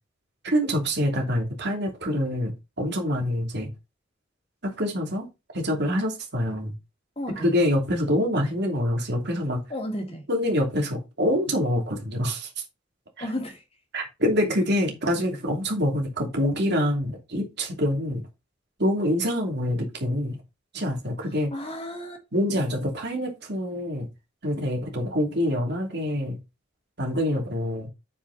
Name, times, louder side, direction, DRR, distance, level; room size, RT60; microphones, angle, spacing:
voice 1, 0.4-2.5 2.8-3.7 4.6-5.3 5.5-6.7 7.4-9.6 10.3-12.5 13.2-13.3 13.9-18.2 18.8-20.4 20.7-21.5 22.3-24.1 24.4-26.4 27.0-27.9, equal, 60° right, 3.0 m, -25 dB
voice 2, 7.2-7.5 9.7-10.2 13.2-13.6 21.5-22.2, left 1 dB, 30° left, 2.6 m, -32 dB
8.5 x 5.5 x 4.1 m
head